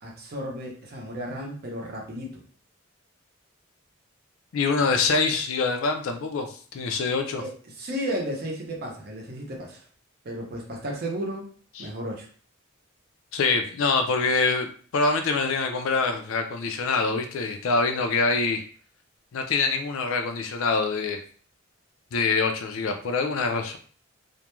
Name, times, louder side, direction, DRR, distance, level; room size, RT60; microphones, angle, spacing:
voice 1, 0.0-2.4 7.4-9.8 10.2-11.5 11.8-12.3, equal, 50° right, -1 dB, 0.6 m, -33 dB
voice 2, 4.5-7.4 11.8-11.9 13.3-18.6 19.3-21.2 22.1-23.8, left 4 dB, 75° left, 5 dB, 0.4 m, -25 dB
2.4 x 2.1 x 3.0 m, 0.43 s
head